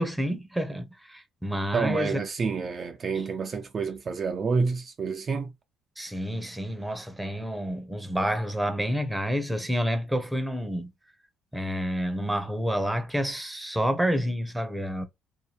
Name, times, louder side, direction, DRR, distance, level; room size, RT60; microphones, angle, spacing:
voice 1, 0.0-2.2 3.1-3.2 6.0-10.9 11.5-15.1, equal, 5° right, 0.7 m, -29 dB
voice 2, 1.7-5.5, right 5 dB, 45° right, 0.4 m, -28 dB
2.7 x 2.1 x 3.2 m
hypercardioid pair, 60°, 0 cm